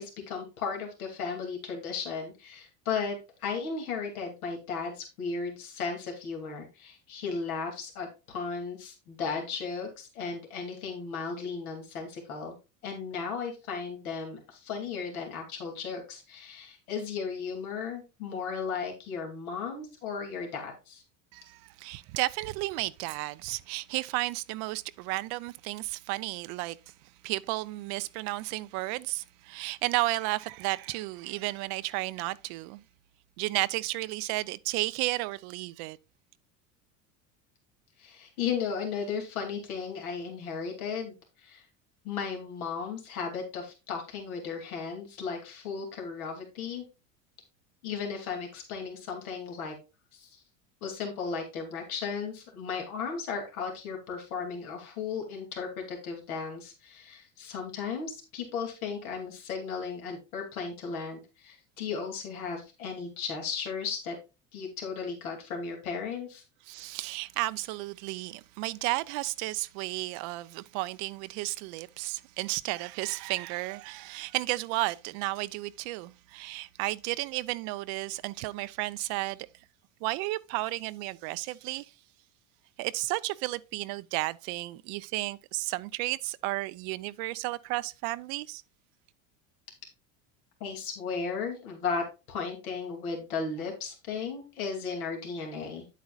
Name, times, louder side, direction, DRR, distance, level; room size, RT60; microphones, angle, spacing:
voice 1, 0.0-12.5 12.8-21.0 38.0-41.7 42.0-46.8 47.8-49.7 50.1-50.4 50.8-64.2 64.5-66.4 90.6-96.0, left 5 dB, 85° left, 2.6 m, -35 dB
voice 2, 21.3-26.8 27.2-32.8 33.4-36.0 66.7-79.5 80.0-81.9 82.8-88.6, right 20 dB, 60° right, 0.5 m, -33 dB
9.3 x 8.2 x 2.4 m
hypercardioid pair, 90°, 42 cm